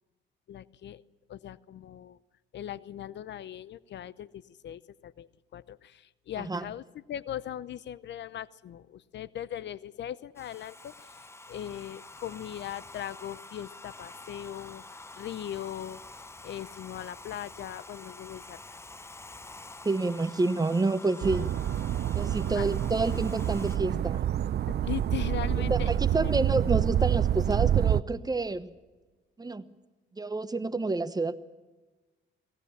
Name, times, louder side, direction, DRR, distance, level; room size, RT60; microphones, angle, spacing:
voice 1, 0.5-1.0 1.3-2.2 2.5-16.0 16.4-18.8 22.6-22.7 24.7-25.9 26.2-26.3, left 11 dB, 65° left, 0.7 m, -39 dB
Domestic sounds home sounds, 10.4-23.8, left 2 dB, 15° left, 0.7 m, -47 dB
voice 2, 19.8-21.5 22.1-24.2 25.7-28.7 29.4-29.6 30.2-31.4, right 3 dB, 20° right, 1.0 m, -28 dB
sound 1, 21.2-28.0, right 10 dB, 55° right, 0.6 m, -27 dB
23.5 x 18.0 x 7.3 m
cardioid pair, 90°, 20 cm